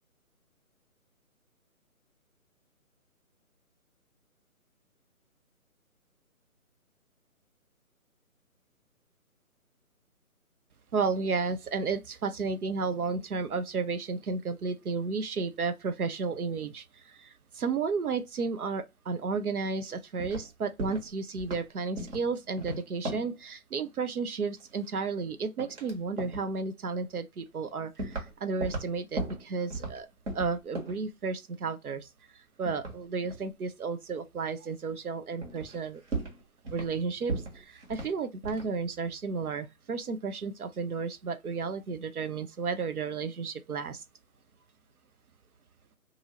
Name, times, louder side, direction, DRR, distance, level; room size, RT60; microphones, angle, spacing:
voice 1, 10.9-30.1 30.3-36.0 36.7-44.0, right 4 dB, 85° right, 0.7 m, -33 dB
sound 1, 19.9-20.5 20.8-21.1 21.3-21.7 22.0-22.3 22.6-23.4 24.6-25.3 25.6-25.9 26.2-26.5 27.2-27.3 28.0-28.3 28.6-30.0 30.3-31.0 32.7-33.4 34.9-35.0 35.4-35.8 36.1-37.0 37.3-38.2 38.4-38.7, right 2 dB, 55° right, 1.6 m, -37 dB
2.7 x 2.6 x 2.9 m
figure-of-eight pair, 150°, 43 cm